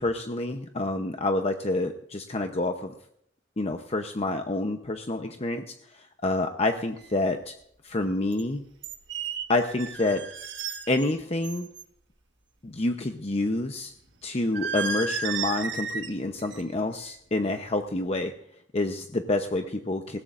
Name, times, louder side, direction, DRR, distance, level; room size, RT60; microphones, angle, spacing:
voice 1, 0.0-2.9 3.6-7.5 7.8-8.6 9.5-10.2 10.9-11.7 12.6-13.9 14.2-18.3 18.7-20.2, left 2 dB, 35° left, 6 dB, 0.8 m, -28 dB
sound 1, 7.0-7.1 8.3-8.4 8.8-11.1 11.4-11.8 14.5-16.1 16.4-16.7 17.1-17.4, right 5 dB, 70° right, 1.6 m, -33 dB
20.5 x 16.5 x 2.6 m, 0.70 s
head